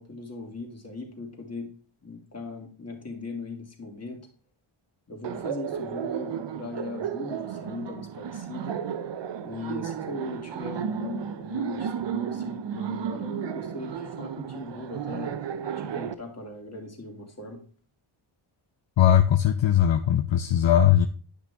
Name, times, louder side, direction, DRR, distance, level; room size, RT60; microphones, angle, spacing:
voice 1, 0.0-1.7 2.0-4.2 5.1-8.8 9.4-15.4 15.8-17.6, left 2 dB, 30° left, 1 dB, 2.5 m, -38 dB
Laughter, 5.2-16.1, right 8 dB, 60° right, 0.7 m, -33 dB
voice 2, 19.0-21.1, left 10 dB, 65° left, 8 dB, 0.6 m, -20 dB
10.5 x 5.8 x 3.5 m, 0.39 s
cardioid pair, 75°, 49 cm